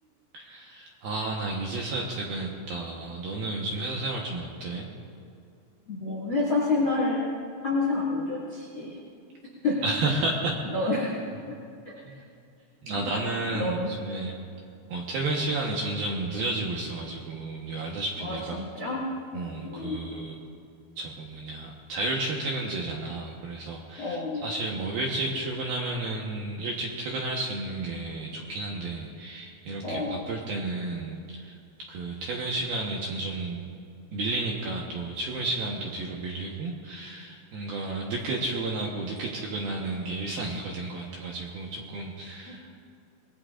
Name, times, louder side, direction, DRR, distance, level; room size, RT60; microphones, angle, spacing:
voice 1, 0.3-4.9 9.8-10.6 12.0-12.2 12.8-14.4 14.9-18.6 19.3-20.4 21.0-31.6 31.9-33.6 34.1-42.7, right 2 dB, 70° right, -2 dB, 2.4 m, -32 dB
voice 2, 5.9-7.2 7.6-9.0 9.6-9.8 10.7-11.2 11.5-11.6 11.9-12.0 13.0-13.2 13.5-13.9 18.2-19.1 19.6-20.0 24.0-24.4 29.8-30.2 42.5-42.6, left 3 dB, 40° left, -4 dB, 1.9 m, -28 dB
24.5 x 20.5 x 2.5 m, 2.4 s
omnidirectional pair, 5.6 m